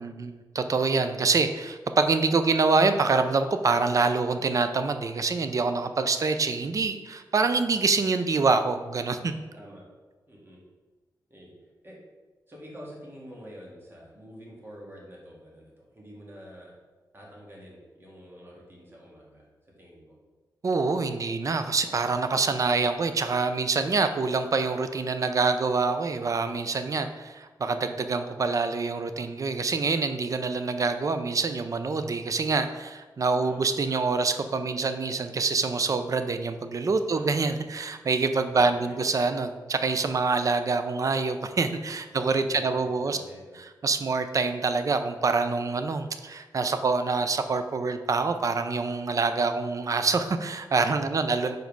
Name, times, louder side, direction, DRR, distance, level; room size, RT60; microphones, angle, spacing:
voice 1, 0.0-9.3 20.6-43.2 43.6-51.6, right 4 dB, 45° right, 9 dB, 0.5 m, -26 dB
voice 2, 10.3-10.6 11.3-11.5 11.8-12.0 12.5-16.7 17.1-20.2 33.4-33.6 37.1-37.4 38.3-39.0 42.1-42.2 42.5-43.6 51.1-51.3, equal, 30° right, -3 dB, 1.9 m, -47 dB
5.1 x 4.6 x 5.2 m, 1.3 s
wide cardioid pair, 115°, 8 cm